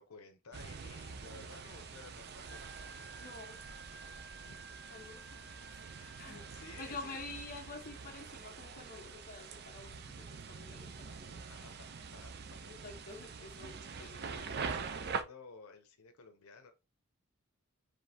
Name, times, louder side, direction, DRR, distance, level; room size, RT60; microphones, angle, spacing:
voice 1, 0.0-2.6 4.4-4.6 6.5-7.2 11.5-12.3 13.7-16.7, left 4 dB, 85° left, 0.7 m, -55 dB
sound 1, 0.5-15.2, right 5 dB, 45° right, 0.5 m, -45 dB
Wind instrument woodwind instrument, 2.5-8.3, right 3 dB, ahead, 0.7 m, -55 dB
voice 2, 3.2-3.6 4.9-11.7 12.7-14.9, left 3 dB, 40° left, 1.0 m, -49 dB
5.2 x 3.3 x 2.8 m
head